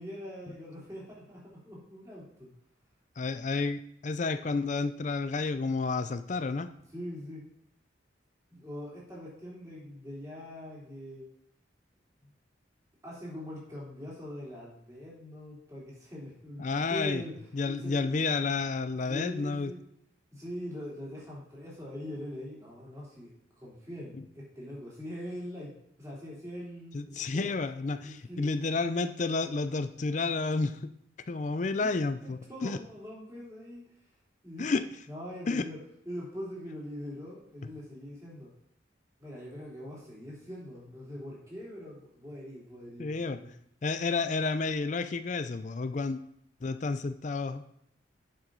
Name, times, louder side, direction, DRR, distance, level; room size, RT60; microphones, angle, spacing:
voice 1, 0.0-2.5 6.9-7.4 8.5-11.3 12.2-12.3 13.0-18.1 19.1-19.8 20.3-23.3 23.5-25.7 26.0-27.0 27.3-27.5 28.0-28.5 31.8-34.0 34.4-34.7 35.1-35.8 36.0-38.5 39.2-43.5, left 1 dB, 15° right, -6 dB, 3.3 m, -42 dB
voice 2, 3.2-6.7 16.6-17.2 17.5-19.7 26.9-30.9 31.3-32.8 34.6-34.8 35.5-35.6 43.0-43.4 43.8-46.2 46.6-47.6, left 3 dB, 40° left, 11 dB, 0.4 m, -30 dB
9.0 x 7.0 x 3.8 m, 0.75 s
head